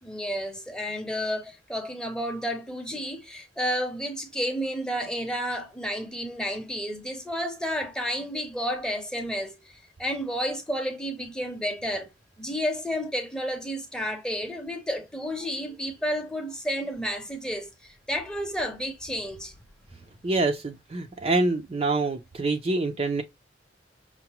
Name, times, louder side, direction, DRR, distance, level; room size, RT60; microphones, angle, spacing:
voice 1, 0.0-12.1 12.4-19.5, equal, 5° left, 0.7 m, -31 dB
voice 2, 20.2-23.2, right 2 dB, 30° right, 0.4 m, -26 dB
5.7 x 2.1 x 2.9 m
head